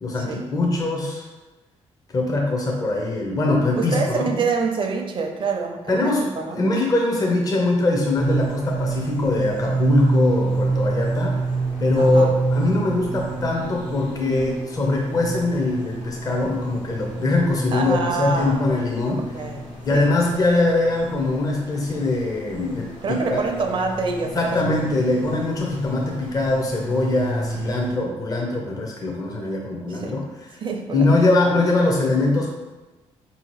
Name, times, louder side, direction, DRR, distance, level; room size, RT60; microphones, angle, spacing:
voice 1, 0.0-1.3 2.1-4.5 5.9-6.3 6.5-11.3 11.8-19.2 19.9-23.4 24.3-30.2 30.9-32.5, left 2 dB, 30° left, -1 dB, 0.6 m, -22 dB
voice 2, 3.8-6.6 12.0-12.3 17.7-18.6 19.3-19.6 19.9-20.1 23.0-24.4 29.9-30.1 30.6-31.1, right 4 dB, 45° right, 3 dB, 0.5 m, -26 dB
sound 1, 8.1-27.9, right 3 dB, 90° left, 1.5 m, -29 dB
4.6 x 2.8 x 3.0 m, 1.1 s
cardioid pair, 115°, 12 cm